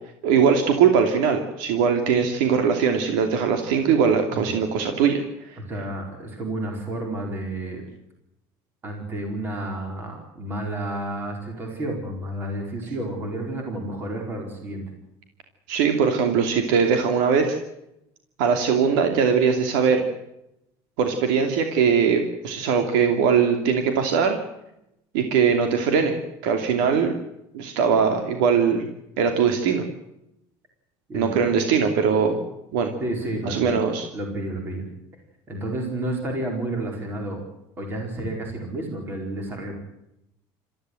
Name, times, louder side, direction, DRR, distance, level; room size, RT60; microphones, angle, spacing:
voice 1, 0.2-5.6 15.7-17.6 18.4-20.0 21.0-24.4 25.1-27.1 27.5-28.9 29.2-29.8 31.1-32.4 32.7-32.9 33.4-34.1, right 6 dB, 90° right, 5 dB, 2.8 m, -21 dB
voice 2, 5.7-7.8 8.8-14.8 26.7-26.8 31.1-31.6 33.0-33.7 34.1-34.8 35.5-37.4 37.8-39.7, right 1 dB, 20° right, 2 dB, 4.5 m, -31 dB
28.0 x 14.5 x 7.9 m, 0.84 s
cardioid pair, 180°, 10 cm